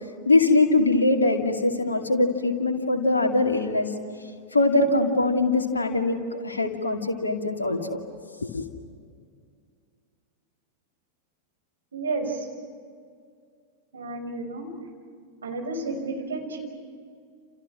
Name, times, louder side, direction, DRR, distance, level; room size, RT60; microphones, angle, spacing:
voice 1, 0.3-3.9 4.5-8.0 8.4-8.6, left 2 dB, 75° left, 2 dB, 2.4 m, -22 dB
voice 2, 11.9-12.5 13.9-14.7 15.4-16.6, right 3 dB, 70° right, 2 dB, 5.8 m, -31 dB
30.0 x 29.5 x 6.2 m, 2.2 s
figure-of-eight pair, 90°, 0 cm